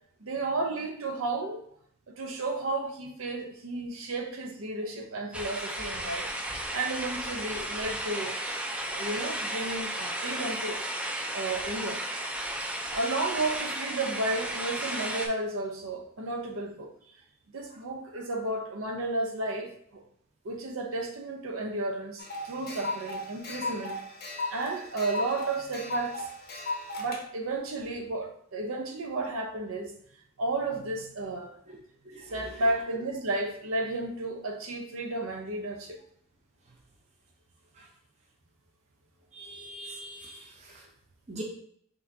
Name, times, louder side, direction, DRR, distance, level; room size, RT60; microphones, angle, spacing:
voice 1, 0.2-1.6 2.2-8.4 8.9-10.8 11.3-12.0 12.9-16.9 17.5-20.0 20.4-26.3 27.0-29.9 30.4-31.6 32.2-36.0, right 2 dB, 80° right, 3 dB, 0.7 m, -33 dB
sound 1, 5.3-15.3, right 1 dB, 5° right, 0.3 m, -34 dB
sound 2, 22.2-27.2, left 2 dB, 45° left, 0.6 m, -36 dB
voice 2, 39.3-40.7 41.3-41.4, right 1 dB, 30° right, -1 dB, 0.7 m, -42 dB
5.4 x 2.7 x 2.7 m, 0.66 s
head